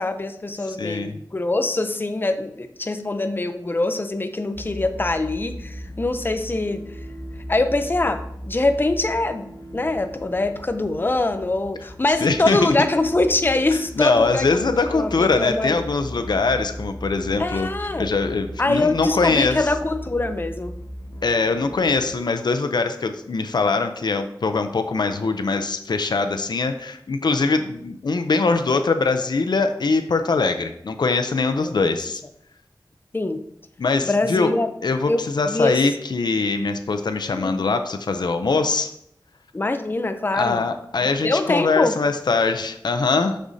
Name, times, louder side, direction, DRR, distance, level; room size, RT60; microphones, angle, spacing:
voice 1, 0.0-6.9 7.5-15.8 17.4-18.1 18.6-20.7 31.6-31.8 33.1-33.4 34.1-34.7 35.1-35.9 37.3-37.7 39.5-40.6 41.0-42.0, left 2 dB, 30° left, 8 dB, 0.5 m, -23 dB
voice 2, 0.8-1.2 12.2-12.7 14.0-17.7 18.0-19.6 21.2-32.2 33.8-34.5 34.8-38.9 40.3-43.4, left 4 dB, 80° left, 8 dB, 0.5 m, -22 dB
sound 1, 4.5-22.2, equal, 65° left, 1.3 m, -37 dB
6.6 x 6.3 x 2.7 m, 0.72 s
wide cardioid pair, 70°, 7 cm